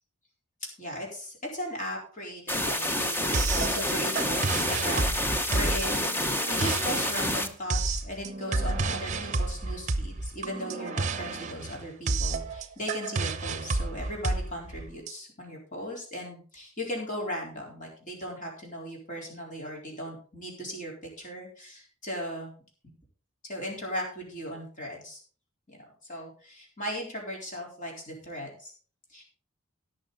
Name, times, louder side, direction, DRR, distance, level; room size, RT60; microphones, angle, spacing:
voice 1, 0.8-6.2 6.5-22.5 23.4-25.2 25.7-25.8 26.1-28.7 29.1-29.2, equal, 35° left, -1 dB, 4.2 m, -37 dB
sound 1, 2.5-7.5, left 1 dB, 10° left, 0.8 m, -28 dB
sound 2, 3.3-15.1, right 3 dB, 35° right, 0.9 m, -31 dB
17.5 x 6.5 x 4.1 m, 0.41 s
head